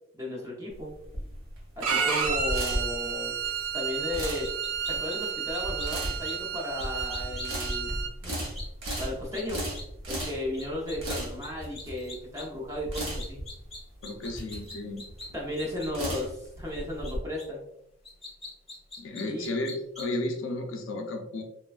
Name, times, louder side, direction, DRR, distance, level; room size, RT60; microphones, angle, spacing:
voice 1, 0.1-0.9 1.8-3.4 3.7-4.5 4.9-8.0 8.2-8.4 9.0-9.7 10.1-13.5 15.3-17.6 19.3-19.5, left 1 dB, 15° right, -3 dB, 0.6 m, -35 dB
sound 1, 0.7-17.2, right 1 dB, 65° right, 0.9 m, -36 dB
Bowed string instrument, 1.8-8.1, right 6 dB, 85° right, 0.4 m, -31 dB
sound 2, 4.2-5.2 5.5-5.9 6.2-6.3 6.8-7.8 8.5-9.0 9.3-9.4 9.7-9.8 10.2-10.3 10.6-11.2 11.4-11.5 11.7-12.4 12.9-15.3 15.6-15.9 17.0-17.1 17.4-17.5 18.0-20.2, left 3 dB, ahead, 1.1 m, -42 dB
voice 2, 14.0-15.0 19.0-21.4, left 2 dB, 55° left, 3 dB, 0.4 m, -33 dB
3.2 x 2.2 x 2.3 m, 0.80 s
head